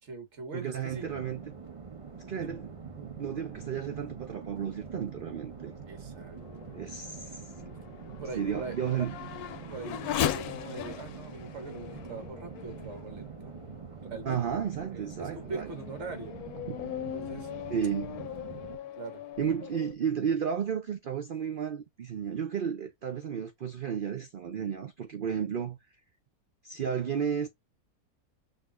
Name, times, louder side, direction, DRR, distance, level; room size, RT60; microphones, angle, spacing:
voice 1, 0.0-1.1 2.4-2.6 5.9-6.7 8.1-8.7 9.7-13.6 14.0-14.4 14.9-16.4 17.1-17.5 19.0-19.2, right 3 dB, 50° right, 1.6 m, -42 dB
voice 2, 0.5-1.4 2.3-5.7 6.7-7.5 8.3-9.1 14.3-15.7 16.7-16.8 17.7-18.2 19.4-25.8 26.6-27.5, right 7 dB, 80° right, 0.4 m, -33 dB
sound 1, 0.9-18.8, right 5 dB, 25° right, 0.8 m, -45 dB
Race car auto racing / Accelerating revving vroom, 5.9-13.8 14.5-14.6 15.2-19.9, left 10 dB, 80° left, 1.1 m, -39 dB
6.4 x 2.7 x 2.4 m
omnidirectional pair, 1.6 m